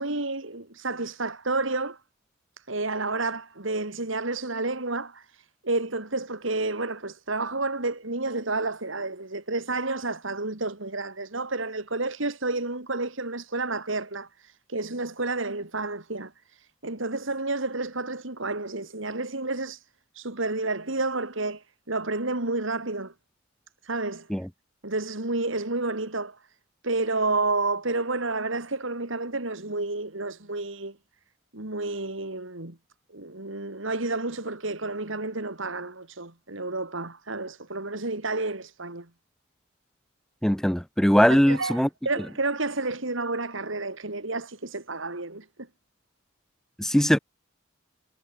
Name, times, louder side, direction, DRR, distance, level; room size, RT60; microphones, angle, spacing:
voice 1, 0.0-2.0 2.6-19.9 20.1-23.1 23.8-24.3 24.8-26.4 26.8-31.0 31.5-32.8 33.1-39.1 41.3-45.5, right 3 dB, 65° right, 3.0 m, -30 dB
voice 2, 40.4-41.9 46.8-47.2, equal, ahead, 0.5 m, -20 dB
head